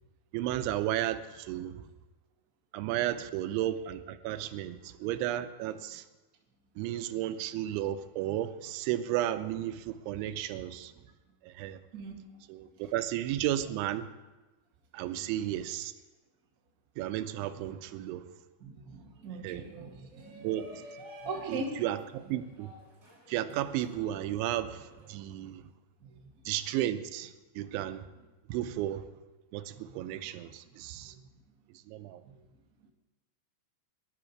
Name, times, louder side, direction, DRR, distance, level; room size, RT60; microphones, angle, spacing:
voice 1, 0.3-1.8 2.7-6.1 6.8-10.9 11.4-11.8 12.5-14.1 14.9-15.9 17.0-18.3 19.4-19.6 20.4-20.7 21.5-22.7 23.3-25.6 26.5-28.1 28.5-29.1 29.5-31.2 31.9-32.2, right 12 dB, 90° right, 11 dB, 3.1 m, -33 dB
voice 2, 12.5-12.9 18.6-20.5 21.2-21.8 26.0-26.3 27.5-27.7 28.5-28.6 29.7-30.0 31.0-31.2 32.2-32.4, right 3 dB, 40° right, -1 dB, 1.2 m, -42 dB
Shout, 19.9-25.1, equal, 20° right, 3.8 m, -51 dB
20.5 x 11.0 x 4.6 m, 1.2 s
omnidirectional pair, 5.3 m